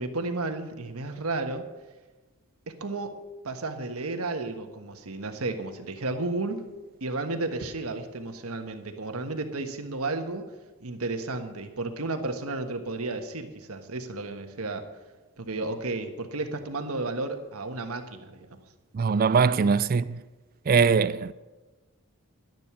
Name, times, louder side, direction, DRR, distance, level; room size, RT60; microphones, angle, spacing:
voice 1, 0.0-1.7 2.7-6.7 7.0-10.5 10.8-14.9 15.4-18.6, right 2 dB, 85° right, 1.4 m, -33 dB
voice 2, 18.9-20.2 20.7-21.3, right 5 dB, 40° right, 0.3 m, -22 dB
11.5 x 10.5 x 6.0 m
head